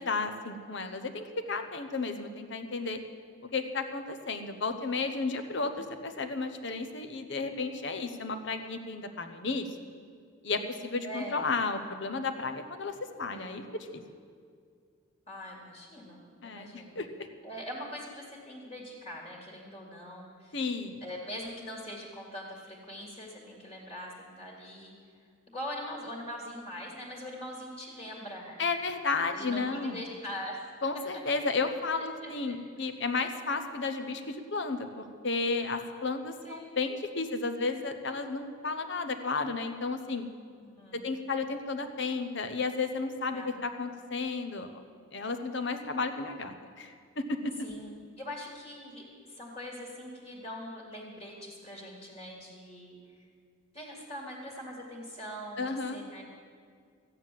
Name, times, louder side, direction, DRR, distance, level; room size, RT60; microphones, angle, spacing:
voice 1, 0.0-3.0 3.5-9.7 10.4-13.6 13.9-14.0 16.4-17.1 20.5-21.0 28.6-30.0 30.8-40.2 40.9-44.7 45.1-47.5 55.6-56.0, left 4 dB, 60° left, 8 dB, 1.0 m, -33 dB
voice 2, 11.0-11.5 15.3-17.0 17.4-20.6 21.0-24.9 25.5-28.7 29.3-30.6 32.2-32.6 33.1-33.2 36.4-36.8 40.6-41.1 43.3-43.5 47.6-53.0 53.7-56.2, equal, 30° left, -2 dB, 2.1 m, -42 dB
13.5 x 9.4 x 7.6 m, 2.1 s
head